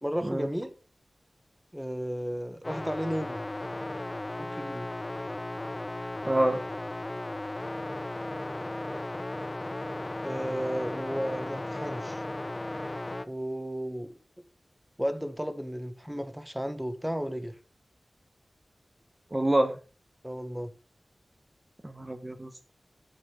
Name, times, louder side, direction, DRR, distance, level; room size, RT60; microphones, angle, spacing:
voice 1, 0.0-0.7 1.7-3.4 4.4-4.9 8.9-9.0 10.2-12.2 13.3-14.1 15.0-17.5 20.2-20.7, equal, 5° right, 1.7 m, -34 dB
sound 1, 2.6-13.2, left 2 dB, 35° left, 0.9 m, -36 dB
voice 2, 6.2-6.6 19.3-19.8 21.8-22.7, right 1 dB, 25° right, 1.2 m, -27 dB
10.5 x 9.4 x 5.2 m
wide cardioid pair, 65°, 0 cm